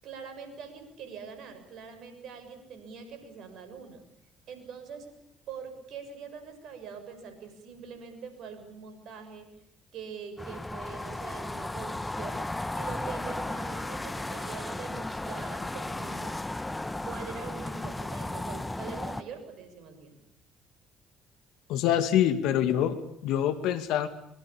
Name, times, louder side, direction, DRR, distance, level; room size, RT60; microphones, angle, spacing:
voice 1, 0.0-4.0 4.5-5.1 5.5-9.5 9.9-12.5 12.7-16.4 17.0-20.2, right 6 dB, 65° right, 8 dB, 6.7 m, -43 dB
sound 1, 10.4-19.2, left 2 dB, 15° left, 1.8 m, -35 dB
voice 2, 21.7-24.1, left 10 dB, 70° left, 10 dB, 2.3 m, -25 dB
23.5 x 23.0 x 8.8 m, 0.74 s
hypercardioid pair, 50°, 0 cm